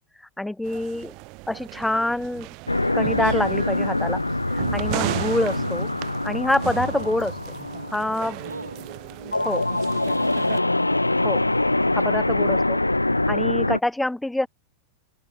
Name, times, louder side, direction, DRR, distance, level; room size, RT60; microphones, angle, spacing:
voice 1, 0.4-1.1 1.5-2.5 2.9-4.2 4.5-5.9 6.2-7.3 7.9-8.4 9.4-9.7 11.2-11.4 11.9-12.8 13.3-14.5, left 1 dB, 5° left, 1.6 m, -26 dB
sound 1, 0.6-10.6, right 29 dB, 45° right, 4.6 m, -35 dB
sound 2, 2.7-13.8, left 2 dB, 85° left, 0.5 m, -24 dB
voice 2, 5.1-5.6 8.4-8.8 10.1-10.8 12.0-12.7, right 2 dB, 80° right, 2.3 m, -43 dB
open air
figure-of-eight pair, 90°, 0 cm